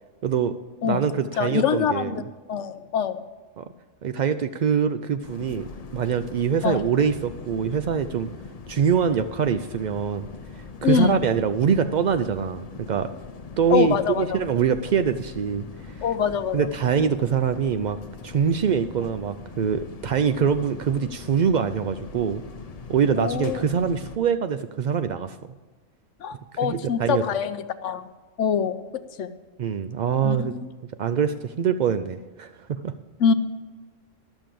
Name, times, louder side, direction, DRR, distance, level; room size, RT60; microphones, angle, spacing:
voice 1, 0.2-0.6 0.8-2.1 3.6-3.7 4.0-8.3 8.7-10.3 10.5-13.1 13.6-15.9 16.5-18.0 18.2-22.4 22.9-25.4 26.6-27.2 29.6-30.6 31.0-32.9, right 7 dB, 80° right, 10 dB, 0.4 m, -24 dB
voice 2, 1.4-2.2 2.5-3.2 6.6-6.8 10.8-11.2 13.7-14.4 16.0-16.7 23.2-23.6 26.2-28.1 28.4-28.8 29.2-29.3 30.2-30.7 33.2-33.3, left 7 dB, 70° left, 10 dB, 1.0 m, -24 dB
sound 1, 5.2-24.2, left 4 dB, 40° left, 0.6 m, -41 dB
12.5 x 6.8 x 7.5 m, 1.3 s
omnidirectional pair, 1.3 m